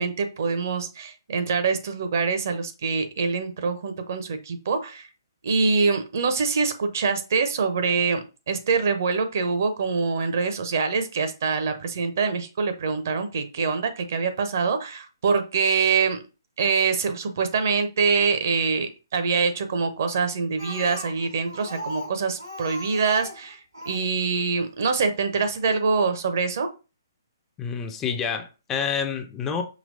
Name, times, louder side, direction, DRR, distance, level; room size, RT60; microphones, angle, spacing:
voice 1, 0.0-5.1 5.4-16.2 16.6-23.6 23.9-26.7, right 5 dB, 50° right, 0.6 m, -24 dB
Speech, 20.6-24.1 25.1-25.2 25.6-25.7 25.9-26.0, left 1 dB, 85° right, 2.3 m, -38 dB
voice 2, 27.6-29.6, left 6 dB, 15° left, 0.4 m, -28 dB
5.0 x 2.9 x 2.6 m
figure-of-eight pair, 130°, 2 cm